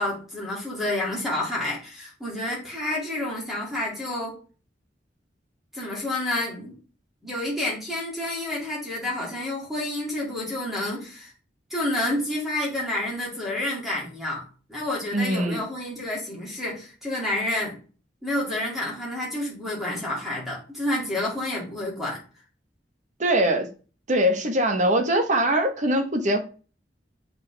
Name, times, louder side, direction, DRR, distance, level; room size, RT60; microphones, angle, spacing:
voice 1, 0.0-4.4 5.7-6.8 7.2-11.3 11.7-17.8 18.2-22.2, left 1 dB, ahead, 2.5 m, -29 dB
voice 2, 15.1-15.6 23.2-23.7 24.1-26.5, right 1 dB, 45° right, 1.1 m, -22 dB
7.3 x 4.3 x 3.4 m
head